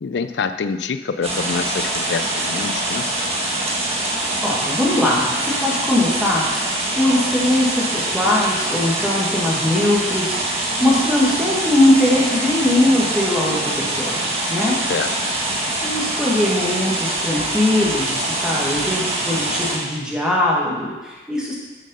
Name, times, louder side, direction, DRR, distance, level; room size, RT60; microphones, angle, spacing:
voice 1, 0.0-3.3 14.9-15.3, left 5 dB, 70° left, 10 dB, 0.4 m, -26 dB
sound 1, 1.2-19.8, right 1 dB, 35° right, 1.3 m, -24 dB
voice 2, 4.4-6.4 6.9-10.4 10.8-14.2 14.5-14.8 15.8-21.5, left 1 dB, 5° right, -5 dB, 1.5 m, -20 dB
7.4 x 5.3 x 5.4 m, 1.2 s
head